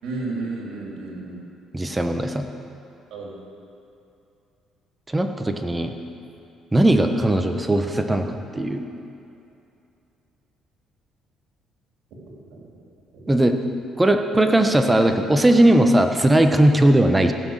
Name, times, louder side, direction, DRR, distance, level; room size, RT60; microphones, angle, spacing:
voice 1, 0.0-1.4 3.1-3.4 12.3-12.8 13.1-13.2, right 3 dB, 75° right, -2 dB, 3.2 m, -33 dB
voice 2, 1.7-2.5 5.1-5.9 6.7-8.3 8.5-8.8 13.3-13.6 14.0-17.3, right 1 dB, 15° right, 6 dB, 1.1 m, -18 dB
15.5 x 6.2 x 7.5 m, 2.7 s
cardioid pair, 85°, 0 cm